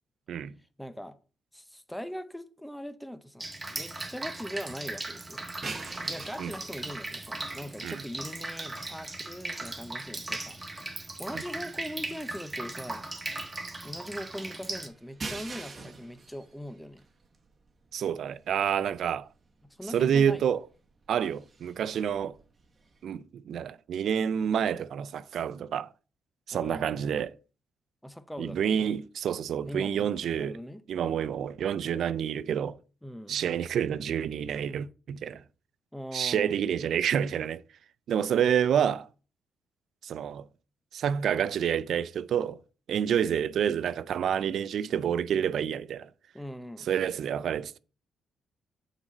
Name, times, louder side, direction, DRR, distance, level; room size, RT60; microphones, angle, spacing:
voice 1, 0.8-1.2 1.5-5.5 6.1-13.1 13.8-17.1 19.7-20.5 26.5-27.0 28.0-28.9 29.7-30.8 33.0-33.5 35.9-36.6 46.3-46.9, equal, 5° left, 0.7 m, -41 dB
Drip, 3.4-14.9, right 2 dB, 25° right, 1.2 m, -38 dB
sound 1, 5.4-23.0, right 3 dB, 40° right, 1.1 m, -48 dB
voice 2, 17.9-19.3 19.9-20.6 21.1-22.4 23.0-25.9 26.5-27.3 28.4-30.6 30.9-32.8 33.3-35.4 36.1-37.6 38.1-39.1 40.0-40.5 40.9-42.6 42.9-46.1 46.9-47.8, right 8 dB, 70° right, 0.3 m, -28 dB
5.9 x 4.0 x 5.2 m
cardioid pair, 75°, 0 cm